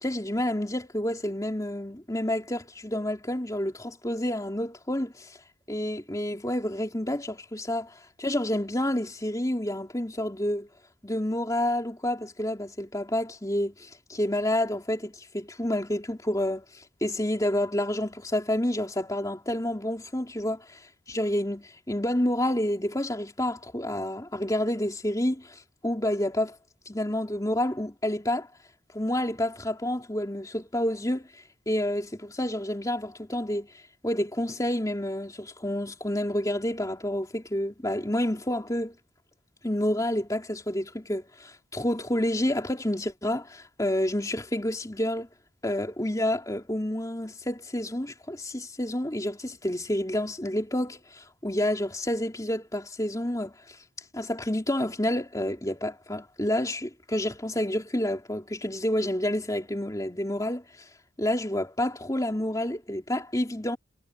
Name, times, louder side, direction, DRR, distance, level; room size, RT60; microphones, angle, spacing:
voice 1, 0.0-5.4 5.7-10.7 11.0-20.8 21.1-26.5 26.8-28.5 28.9-31.3 31.7-33.7 34.0-38.9 39.6-45.3 45.6-53.8 54.1-60.6 61.2-63.8, left 1 dB, 20° left, 3.3 m, -29 dB
head